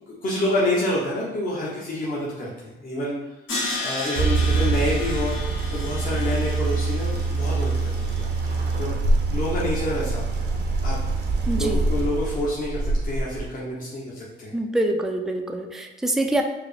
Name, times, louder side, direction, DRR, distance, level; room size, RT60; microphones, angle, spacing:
voice 1, 0.2-3.1 3.8-5.4 5.7-8.9 9.3-11.0 11.6-14.5, left 1 dB, 45° left, -5 dB, 0.9 m, -28 dB
Crash cymbal, 3.5-8.5, left 2 dB, 75° left, 1.2 m, -33 dB
sound 1, 4.2-13.4, right 3 dB, 55° right, 0.6 m, -24 dB
voice 2, 11.5-11.9 14.5-16.4, right 1 dB, ahead, 3 dB, 0.3 m, -25 dB
4.7 x 2.0 x 3.2 m, 1.1 s
cardioid pair, 90°, 20 cm